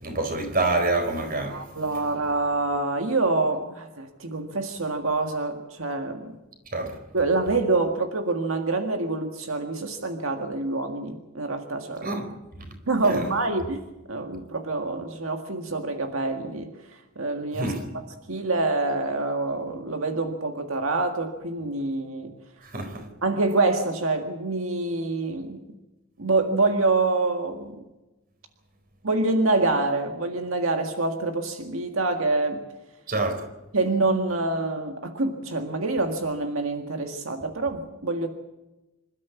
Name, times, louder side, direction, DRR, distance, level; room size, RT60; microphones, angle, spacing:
voice 1, 0.0-1.7 6.7-7.0 12.0-12.7 13.0-13.3 17.5-17.8 22.6-23.1 33.1-33.5, right 2 dB, 45° right, 4.3 m, -27 dB
voice 2, 1.5-6.3 7.1-12.1 12.9-13.8 14.1-16.7 17.2-18.0 18.3-22.3 23.2-25.6 26.2-27.8 29.0-32.6 33.7-38.3, right 3 dB, 85° right, 1.8 m, -26 dB
27.0 x 13.0 x 8.4 m
head